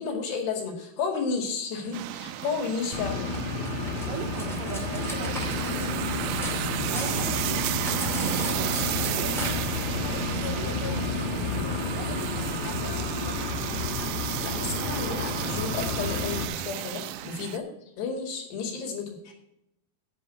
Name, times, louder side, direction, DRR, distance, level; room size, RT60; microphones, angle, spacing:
voice 1, 0.0-3.3 12.1-12.3 14.4-17.6 18.0-19.3, left 5 dB, 85° left, 2 dB, 4.3 m, -32 dB
sound 1, 1.9-17.6, right 15 dB, 90° right, 2.7 m, -33 dB
sound 2, 2.9-16.5, left 3 dB, 60° left, 1.4 m, -31 dB
Cutlery silverware, 3.3-6.6 6.9-9.5, equal, ahead, 1.2 m, -38 dB
voice 2, 4.1-6.4 6.9-13.1, right 7 dB, 70° right, 5 dB, 2.3 m, -41 dB
7.9 x 7.5 x 7.6 m, 0.81 s
omnidirectional pair, 4.7 m